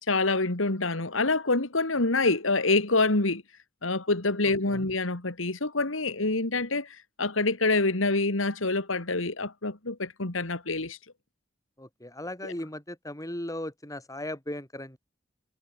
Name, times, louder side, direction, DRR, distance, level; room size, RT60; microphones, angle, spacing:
voice 1, 0.1-3.4 3.8-11.0 12.4-12.5, left 3 dB, 85° left, 2.5 m, -26 dB
voice 2, 11.8-15.0, left 1 dB, 15° left, 6.9 m, -37 dB
head